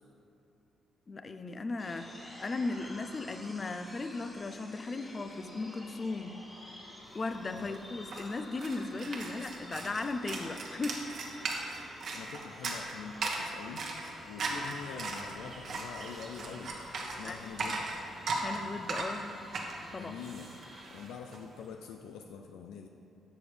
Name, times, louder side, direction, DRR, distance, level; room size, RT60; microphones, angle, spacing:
voice 1, 1.1-6.4 7.1-11.1 17.2-17.4 18.4-19.3 19.9-20.1, left 3 dB, 35° left, 9 dB, 0.5 m, -37 dB
sound 1, 1.8-20.8, left 1 dB, 15° left, 1.5 m, -51 dB
sound 2, 7.2-7.3 7.5-21.4, right 3 dB, 60° right, 1.3 m, -38 dB
voice 2, 12.1-13.9 14.3-16.7 17.1-17.9 19.9-20.5 20.9-22.9, left 6 dB, 90° left, 4 dB, 0.4 m, -45 dB
11.0 x 7.0 x 3.3 m, 2.8 s
cardioid pair, 95°, 0 cm